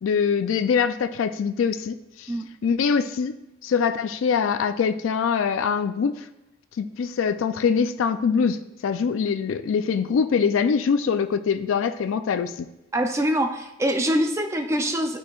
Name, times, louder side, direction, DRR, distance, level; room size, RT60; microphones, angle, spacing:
voice 1, 0.0-2.3 2.6-3.3 3.6-6.3 6.8-12.7, left 6 dB, 70° left, 9 dB, 0.3 m, -23 dB
voice 2, 12.9-15.2, equal, 15° right, 5 dB, 0.4 m, -24 dB
12.0 x 4.6 x 2.3 m, 0.89 s
head